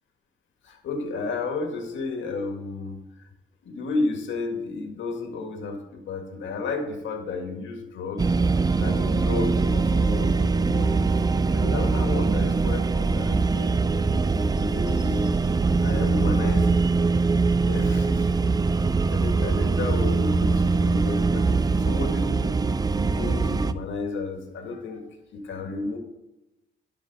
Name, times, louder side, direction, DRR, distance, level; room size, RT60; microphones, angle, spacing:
voice 1, 0.6-3.0 3.6-8.3 8.8-11.1 11.5-15.3 15.8-16.8 17.6-18.4 19.1-22.6 23.1-26.0, left 3 dB, 70° left, 4 dB, 1.9 m, -32 dB
sound 1, 8.2-23.7, right 4 dB, 20° right, 0.4 m, -22 dB
12.0 x 5.1 x 4.2 m, 0.96 s
cardioid pair, 90°, 20 cm